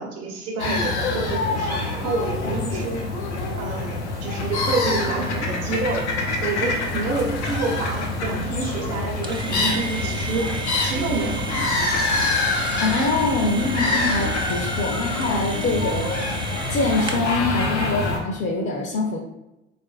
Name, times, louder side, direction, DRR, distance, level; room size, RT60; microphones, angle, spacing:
voice 1, 0.0-3.0 3.6-6.1 6.4-10.5 10.8-11.7, right 3 dB, 50° right, -2 dB, 0.8 m, -28 dB
sound 1, 0.6-18.2, left 3 dB, 90° left, 0.6 m, -26 dB
sound 2, 9.2-17.4, right 3 dB, 15° right, 0.4 m, -33 dB
voice 2, 12.8-16.1 16.7-19.2, left 2 dB, 35° left, 0 dB, 0.6 m, -24 dB
3.8 x 2.5 x 2.3 m, 0.95 s
hypercardioid pair, 60°, 33 cm